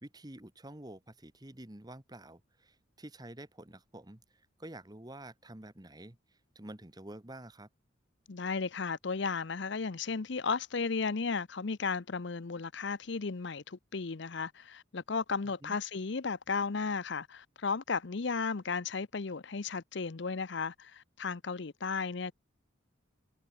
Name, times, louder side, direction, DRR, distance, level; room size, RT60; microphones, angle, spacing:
voice 1, 0.0-7.7 15.6-15.8, right 1 dB, 20° right, 1.3 m, -49 dB
voice 2, 8.3-22.3, left 4 dB, 60° left, 0.7 m, -34 dB
head